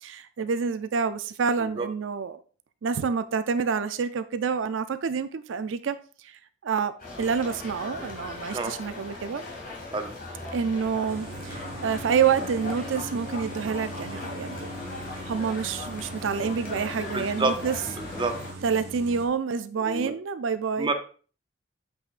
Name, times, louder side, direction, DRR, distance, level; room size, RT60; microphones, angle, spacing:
voice 1, 0.0-2.4 2.8-6.0 6.2-6.3 6.6-6.9 7.2-9.5 10.5-14.7 15.3-17.7 18.6-20.9, right 6 dB, 80° right, 0.4 m, -28 dB
sound 1, 7.0-18.5, left 3 dB, 45° left, 2.3 m, -39 dB
sound 2, 11.1-19.3, right 1 dB, 55° right, 1.3 m, -40 dB
voice 2, 17.1-17.5 18.0-18.4 19.8-20.1 20.8-20.9, right 3 dB, 25° right, 0.7 m, -28 dB
8.2 x 5.6 x 2.5 m
head